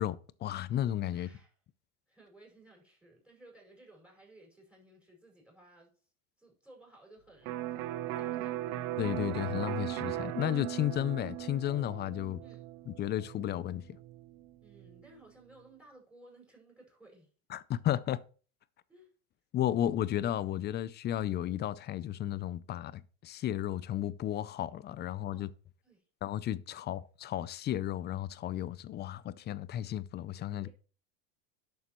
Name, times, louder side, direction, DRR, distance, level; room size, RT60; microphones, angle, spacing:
voice 1, 0.0-1.3 9.0-12.4 12.9-13.8 17.5-18.2 19.5-25.5 26.2-30.7, left 12 dB, 25° left, 0.4 m, -33 dB
voice 2, 1.1-1.5 2.1-5.9 6.4-7.8 8.2-8.5 12.4-12.7 14.6-17.3 18.9-19.1 25.3-25.5 25.8-26.0 30.5-30.7, right 2 dB, 5° right, 5.2 m, -58 dB
Electric guitar, 7.5-15.1, right 14 dB, 70° right, 0.9 m, -38 dB
11.0 x 7.0 x 3.0 m
supercardioid pair, 110°, 42 cm